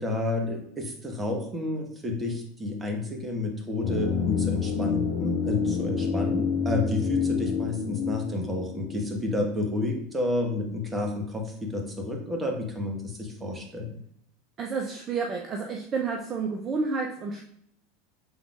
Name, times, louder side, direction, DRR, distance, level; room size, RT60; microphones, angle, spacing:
voice 1, 0.0-14.0, left 2 dB, 20° right, 1 dB, 1.1 m, -30 dB
sound 1, 3.8-9.8 10.1-10.2, left 6 dB, 30° left, 1.0 m, -28 dB
voice 2, 14.6-17.4, right 4 dB, 35° right, 2 dB, 0.5 m, -30 dB
6.1 x 3.6 x 2.4 m, 0.69 s
figure-of-eight pair, 80°, 0 cm